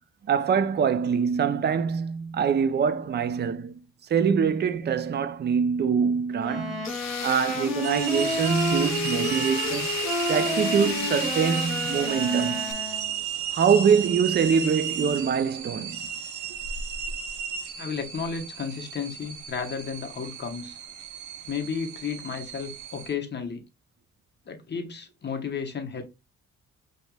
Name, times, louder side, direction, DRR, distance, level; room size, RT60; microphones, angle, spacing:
voice 1, 0.3-3.7 4.1-6.9 7.2-10.0 10.3-12.8 13.5-16.1, right 6 dB, 35° right, 0.4 m, -24 dB
sound 1, 6.3-13.2, left 1 dB, ahead, 1.4 m, -31 dB
Tools, 6.8-12.7, left 11 dB, 60° left, 0.5 m, -35 dB
sound 2, 7.8-23.1, right 8 dB, 70° right, 0.7 m, -34 dB
voice 2, 17.8-20.8 21.5-23.6 24.5-26.0, left 6 dB, 35° left, 1.0 m, -33 dB
5.3 x 2.9 x 2.2 m
cardioid pair, 100°, 31 cm